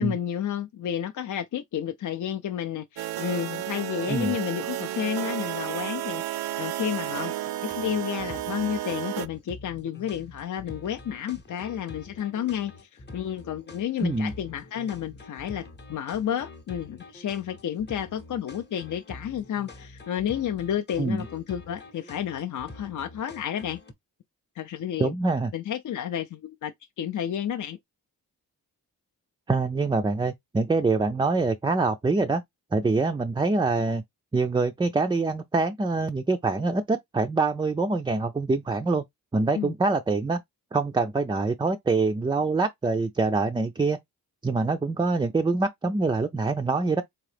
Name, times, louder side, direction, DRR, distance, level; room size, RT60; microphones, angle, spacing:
voice 1, 0.0-7.3 7.7-12.7 13.1-23.8 24.6-25.1 25.5-27.8 39.5-39.7, left 9 dB, 55° left, 0.5 m, -31 dB
sound 1, 3.0-9.3, right 13 dB, 75° right, 0.5 m, -32 dB
sound 2, 7.6-23.9, left 2 dB, 30° left, 0.8 m, -46 dB
voice 2, 14.0-14.3 21.0-21.2 25.0-25.5 29.5-32.4 32.7-34.0 34.3-39.0 39.3-40.4 40.7-44.0 44.4-47.0, right 3 dB, 15° right, 0.3 m, -25 dB
3.7 x 2.7 x 3.3 m
wide cardioid pair, 95°, 37 cm